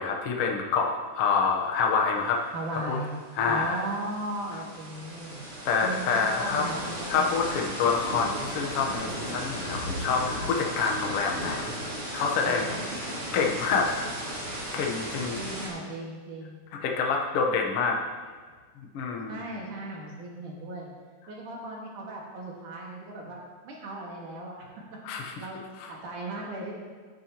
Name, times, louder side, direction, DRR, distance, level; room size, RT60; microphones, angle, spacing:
voice 1, 0.0-2.4 2.9-3.0 3.4-3.8 5.6-6.7 7.1-11.7 12.1-12.6 13.3-13.9 14.7-15.4 16.7-18.0 18.8-19.4 25.0-25.3 25.8-25.9, left 5 dB, 75° left, 0 dB, 1.3 m, -27 dB
voice 2, 2.5-3.1 3.5-5.4 5.8-7.3 12.4-12.8 15.1-16.6 19.3-20.9 21.3-23.4 23.6-24.6 25.2-25.6 25.8-26.7, right 2 dB, 65° right, -3 dB, 3.1 m, -37 dB
sound 1, 2.7-2.8 3.1-15.7, right 1 dB, 20° right, 2.4 m, -36 dB
14.0 x 8.8 x 2.9 m, 1.5 s
omnidirectional pair, 4.1 m